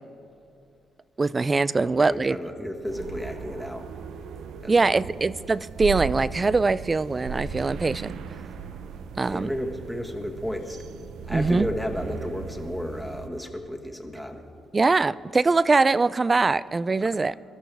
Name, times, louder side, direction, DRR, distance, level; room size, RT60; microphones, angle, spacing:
voice 1, 1.2-2.4 4.7-8.1 9.2-9.5 11.3-11.7 14.7-17.3, right 3 dB, 25° right, 18 dB, 0.3 m, -22 dB
voice 2, 1.8-3.9 4.6-5.0 9.2-10.8 11.2-14.4, equal, ahead, 2 dB, 1.6 m, -33 dB
sound 1, 2.9-13.3, right 6 dB, 75° right, 0.6 m, -37 dB
24.0 x 13.0 x 3.5 m, 2.5 s
cardioid pair, 90°, 0 cm